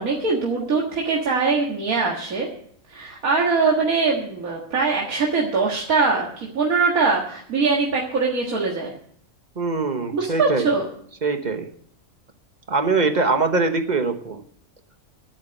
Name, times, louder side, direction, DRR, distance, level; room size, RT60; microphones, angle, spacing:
voice 1, 0.0-2.5 2.9-8.9 10.1-10.9, right 4 dB, 85° right, -2 dB, 2.2 m, -22 dB
voice 2, 9.6-10.7 11.2-11.7 12.7-14.4, right 3 dB, 35° right, 7 dB, 1.2 m, -22 dB
11.0 x 8.8 x 8.1 m, 0.63 s
omnidirectional pair, 1.4 m